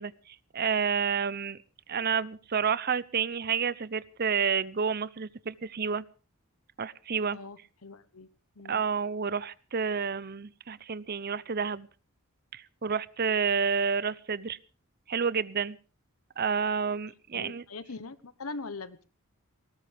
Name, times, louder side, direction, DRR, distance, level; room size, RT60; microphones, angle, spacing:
voice 1, 0.0-1.6 1.9-6.0 6.8-7.4 8.7-11.9 12.5-14.6 15.1-15.8 16.4-17.6, right 6 dB, 45° right, 19 dB, 0.7 m, -30 dB
voice 2, 7.3-8.3 8.5-8.8 17.1-19.0, left 3 dB, 80° left, 14 dB, 1.2 m, -42 dB
19.5 x 18.0 x 3.5 m, 0.34 s
head